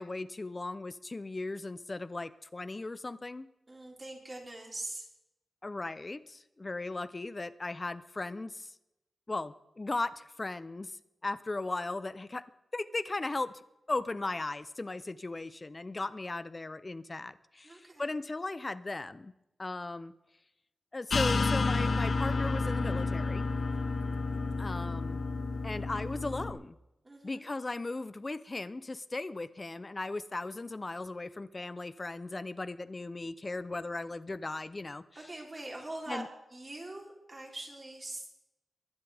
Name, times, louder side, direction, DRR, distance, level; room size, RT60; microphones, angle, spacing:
voice 1, 0.0-3.5 5.6-8.7 9.3-12.4 12.7-13.6 13.9-19.3 19.6-20.1 20.9-23.4 24.6-25.2 25.6-26.8 27.2-35.0 36.1-36.3, left 2 dB, 25° left, 15 dB, 0.6 m, -37 dB
voice 2, 3.7-5.1 17.6-18.1 27.0-27.5 35.1-36.2 36.5-38.3, right 2 dB, 25° right, 0 dB, 3.4 m, -43 dB
sound 1, 21.1-26.5, left 3 dB, 45° left, 1.1 m, -30 dB
22.5 x 11.5 x 3.5 m, 0.90 s
wide cardioid pair, 150°, 0 cm